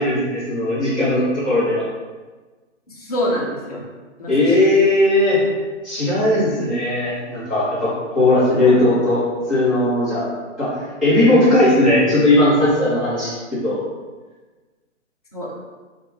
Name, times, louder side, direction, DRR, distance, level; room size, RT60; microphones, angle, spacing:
voice 1, 0.0-1.8 4.3-5.4 5.8-9.2 9.5-10.3 10.6-10.7 11.0-13.8, left 1 dB, 10° right, -15 dB, 1.1 m, -17 dB
voice 2, 2.9-3.8 4.2-4.5 8.5-9.0 15.3-15.5, equal, 30° left, -5 dB, 0.7 m, -26 dB
3.7 x 2.4 x 3.7 m, 1.3 s
hypercardioid pair, 180°, 37 cm